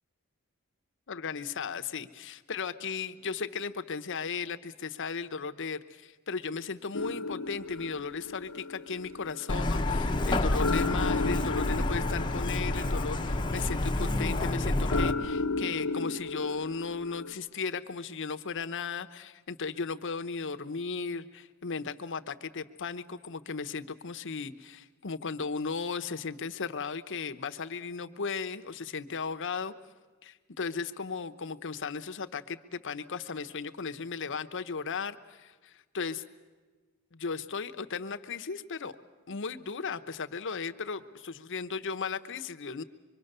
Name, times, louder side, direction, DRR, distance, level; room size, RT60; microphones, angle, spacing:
voice 1, 1.1-29.7 30.2-36.2 37.1-38.9 39.3-42.8, left 5 dB, 60° left, 8 dB, 0.9 m, -36 dB
sound 1, 6.9-17.3, left 3 dB, 90° left, 1.1 m, -35 dB
Truck, 9.5-15.1, left 2 dB, 20° left, 0.9 m, -29 dB
25.5 x 23.0 x 6.7 m, 1.4 s
head